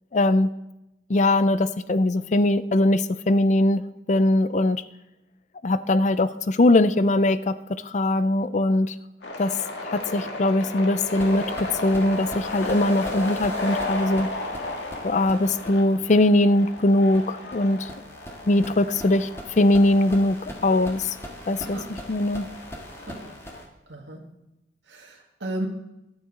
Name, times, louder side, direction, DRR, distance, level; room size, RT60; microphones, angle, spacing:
voice 1, 0.1-0.5 1.1-3.8 4.1-4.8 5.6-7.6 7.8-8.9 9.4-9.5 9.8-14.3 15.0-17.9 18.5-19.3 19.6-21.2 21.5-21.8 22.1-22.5, left 1 dB, 40° left, 14 dB, 0.5 m, -21 dB
sound 1, 9.2-23.6, left 2 dB, 85° left, 2.1 m, -35 dB
sound 2, 11.0-23.7, equal, 15° left, 1.6 m, -42 dB
voice 2, 21.7-22.0 23.0-23.3 23.9-24.3 24.9-25.7, right 1 dB, 90° right, 0 dB, 1.8 m, -35 dB
23.5 x 8.2 x 3.8 m, 0.92 s
head